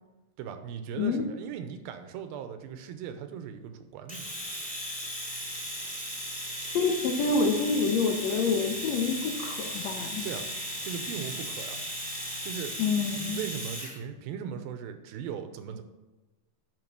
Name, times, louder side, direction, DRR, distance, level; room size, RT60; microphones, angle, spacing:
voice 1, 0.4-4.3 10.2-10.5 10.8-11.8 12.4-15.8, right 8 dB, 85° right, 8 dB, 2.5 m, -38 dB
Domestic sounds home sounds, 4.1-14.0, equal, 5° right, 1.4 m, -36 dB
voice 2, 6.7-10.3 12.8-13.4, left 4 dB, 85° left, 3 dB, 1.5 m, -27 dB
9.2 x 5.9 x 5.3 m, 1.1 s
omnidirectional pair, 4.3 m